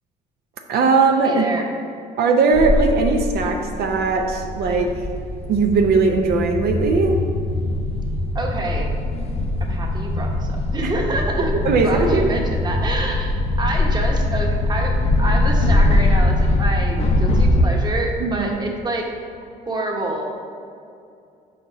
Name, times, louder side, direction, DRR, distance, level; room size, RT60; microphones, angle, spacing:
voice 1, 0.7-1.5 2.2-4.9 5.5-7.2 10.8-10.9 11.6-12.2 18.2-18.5, right 4 dB, 65° right, 2 dB, 0.6 m, -19 dB
voice 2, 1.2-1.6 8.3-8.9 9.6-11.5 11.8-19.0 19.7-20.3, right 2 dB, 25° right, 1 dB, 1.0 m, -27 dB
sound 1, 2.5-17.6, left 2 dB, 40° left, 0.7 m, -21 dB
5.4 x 4.3 x 4.9 m, 2.5 s
cardioid pair, 110°, 17 cm